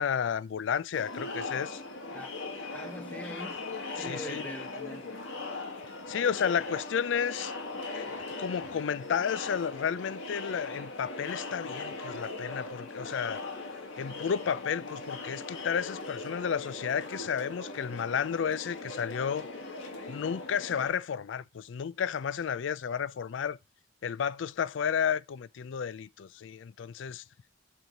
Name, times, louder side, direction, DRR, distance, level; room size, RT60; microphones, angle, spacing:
voice 1, 0.0-1.8 4.0-4.4 6.1-7.5 7.9-8.1 8.4-13.4 14.0-19.5 20.1-23.6 24.0-27.2, left 7 dB, 70° left, 0.4 m, -32 dB
Crowd, 0.9-20.9, left 3 dB, 85° left, 1.7 m, -39 dB
voice 2, 2.7-3.6 3.9-5.2, equal, 10° left, 0.7 m, -42 dB
6.7 x 4.5 x 3.9 m
head